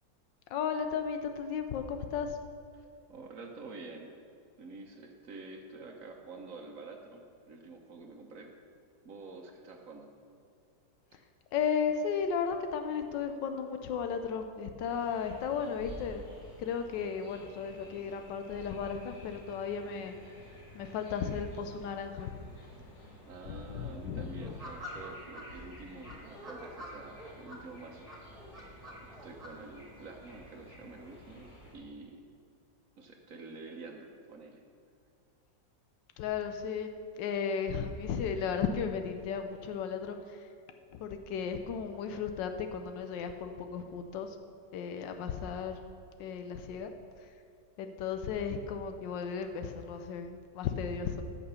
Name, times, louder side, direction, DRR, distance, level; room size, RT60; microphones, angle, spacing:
voice 1, 0.5-2.4 11.5-16.2 16.6-20.2 20.7-22.3 23.5-24.6 36.2-40.5 40.9-44.4 44.7-45.8 46.2-46.9 47.2-47.3 47.8-51.2, left 6 dB, 90° left, 7 dB, 1.3 m, -35 dB
voice 2, 2.7-4.1 4.6-8.5 9.0-10.1 23.3-28.1 29.1-32.2 33.0-34.6, right 3 dB, 55° right, 2 dB, 1.2 m, -48 dB
sound 1, 14.9-31.7, equal, 75° left, 4.0 m, -52 dB
sound 2, 24.4-25.4 26.0-27.6 28.1-29.5, equal, 20° right, 1.8 m, -46 dB
14.5 x 5.8 x 5.6 m, 2.4 s
omnidirectional pair, 1.9 m